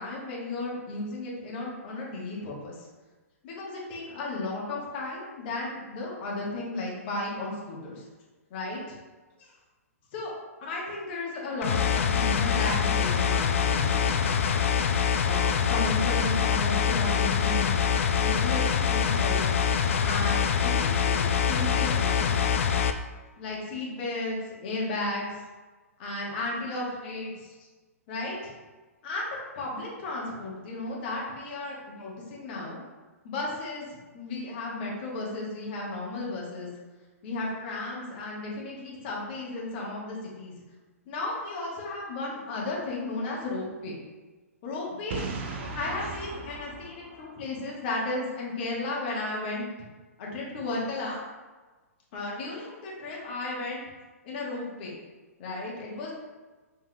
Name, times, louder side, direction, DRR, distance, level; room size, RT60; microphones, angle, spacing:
voice 1, 0.0-2.9 3.4-8.0 8.5-9.0 9.4-9.5 10.1-10.3 10.6-14.3 15.2-17.9 18.2-19.6 20.0-22.3 23.4-24.4 24.6-25.4 26.0-27.7 28.1-28.5 29.0-29.3 29.6-32.8 33.2-36.7 37.2-40.5 41.1-44.0 44.6-49.7 50.2-51.2 52.1-53.8 54.2-55.0 55.4-56.1, left 2 dB, 40° left, -4 dB, 1.2 m, -34 dB
sound 1, 11.6-22.9, left 7 dB, 60° left, 0.4 m, -25 dB
Boom, 45.1-48.0, right 4 dB, 45° right, 0.6 m, -37 dB
5.6 x 3.5 x 2.3 m, 1.2 s
figure-of-eight pair, 115°, 8 cm